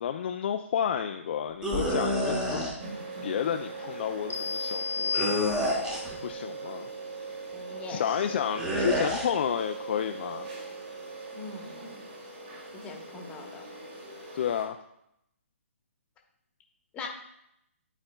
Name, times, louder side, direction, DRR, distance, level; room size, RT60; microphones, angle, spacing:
voice 1, 0.0-2.6 3.2-5.3 6.2-6.9 7.9-10.5 14.3-14.8, left 8 dB, 50° left, 6 dB, 0.3 m, -31 dB
sound 1, 1.6-2.7 5.1-6.2 8.6-9.3, equal, 10° right, 0.9 m, -28 dB
sound 2, 2.8-14.7, right 3 dB, 40° right, 1.6 m, -41 dB
sound 3, 4.3-6.0, left 5 dB, 85° left, 0.9 m, -32 dB
voice 2, 7.5-8.3 11.3-12.0 12.7-13.7 16.9-17.1, left 4 dB, 15° left, 1 dB, 1.0 m, -42 dB
11.5 x 4.2 x 2.2 m, 0.78 s
hypercardioid pair, 140°, 8 cm